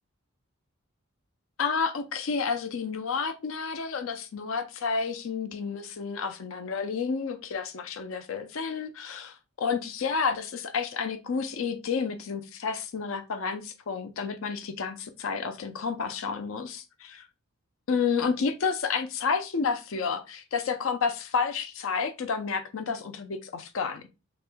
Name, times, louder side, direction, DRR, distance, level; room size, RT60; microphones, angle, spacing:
voice 1, 1.6-17.2 17.9-24.1, left 5 dB, 70° left, 0.5 m, -30 dB
6.0 x 3.4 x 2.2 m
head